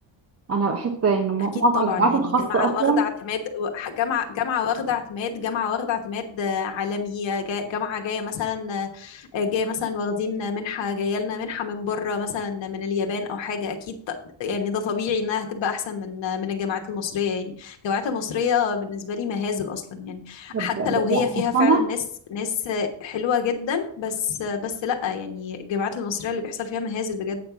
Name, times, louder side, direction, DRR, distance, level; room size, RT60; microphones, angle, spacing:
voice 1, 0.5-3.0 20.5-21.2 21.5-21.8, right 3 dB, 35° right, 4 dB, 0.9 m, -22 dB
voice 2, 1.5-22.0 22.3-27.4, left 6 dB, 70° left, 3 dB, 1.3 m, -27 dB
8.7 x 5.3 x 6.0 m, 0.64 s
cardioid pair, 150°, 46 cm